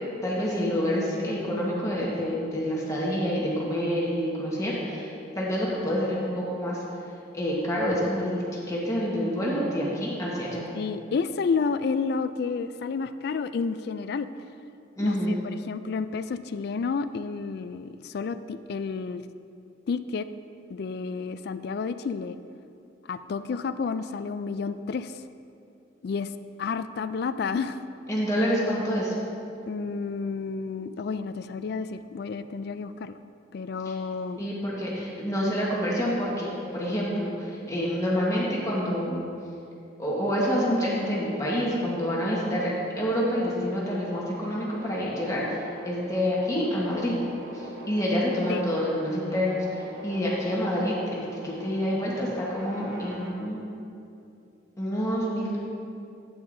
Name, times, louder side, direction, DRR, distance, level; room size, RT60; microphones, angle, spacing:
voice 1, 0.2-6.8 7.3-8.4 8.7-10.6 15.0-15.4 28.1-29.1 33.8-33.9 34.4-39.2 40.0-47.2 47.5-53.6 54.8-55.6, equal, 15° left, -5 dB, 1.3 m, -27 dB
voice 2, 10.7-14.3 15.0-15.4 15.7-19.2 19.9-20.3 20.7-22.4 23.1-25.2 26.0-26.3 26.6-27.8 29.7-33.2 33.5-34.4 48.5-48.6, left 5 dB, 55° left, 12 dB, 0.3 m, -30 dB
sound 1, 43.3-53.3, right 1 dB, 55° right, 1.1 m, -44 dB
12.0 x 8.6 x 2.7 m, 2.6 s
head